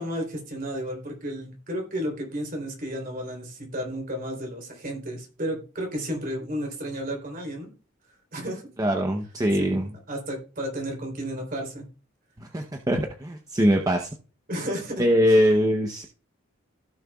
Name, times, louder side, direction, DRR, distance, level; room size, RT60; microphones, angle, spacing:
voice 1, 0.0-7.7 8.3-8.7 9.5-9.8 10.1-11.9 14.5-15.0 15.3-15.4, equal, 45° right, 1 dB, 3.6 m, -32 dB
voice 2, 8.8-9.9 12.4-14.1 15.0-16.0, equal, 20° right, 3 dB, 0.8 m, -22 dB
16.0 x 6.6 x 2.3 m, 0.36 s
head